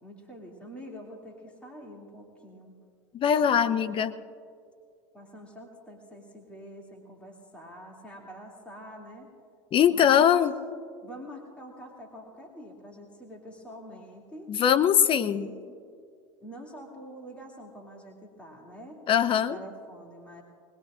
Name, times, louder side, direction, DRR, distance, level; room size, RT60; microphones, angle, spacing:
voice 1, 0.0-2.7 3.5-4.1 5.1-9.3 9.9-10.4 11.0-14.5 15.2-15.8 16.4-19.0 19.5-20.4, equal, 5° left, -2 dB, 2.6 m, -46 dB
voice 2, 3.1-4.1 9.7-10.5 14.5-15.5 19.1-19.6, left 9 dB, 35° left, 12 dB, 0.7 m, -22 dB
21.5 x 20.5 x 2.5 m, 2.2 s
hypercardioid pair, 90°, 16 cm